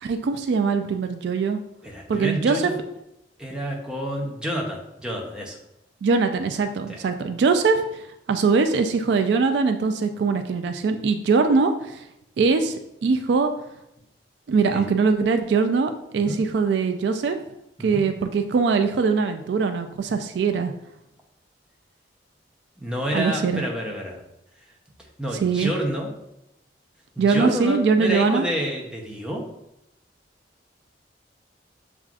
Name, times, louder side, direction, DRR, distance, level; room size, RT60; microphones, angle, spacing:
voice 1, 0.0-1.6 2.1-2.7 6.0-8.0 8.3-12.0 12.4-12.8 13.0-13.5 14.5-17.4 17.8-20.7 23.1-23.6 25.4-25.7 27.2-28.5, right 4 dB, 70° right, 7 dB, 0.3 m, -22 dB
voice 2, 1.8-2.7 3.4-5.6 6.9-7.0 14.7-14.8 16.2-16.4 17.8-18.0 22.8-24.2 25.2-26.1 27.2-29.4, equal, 5° right, -1 dB, 0.6 m, -29 dB
7.1 x 2.4 x 2.4 m, 0.85 s
head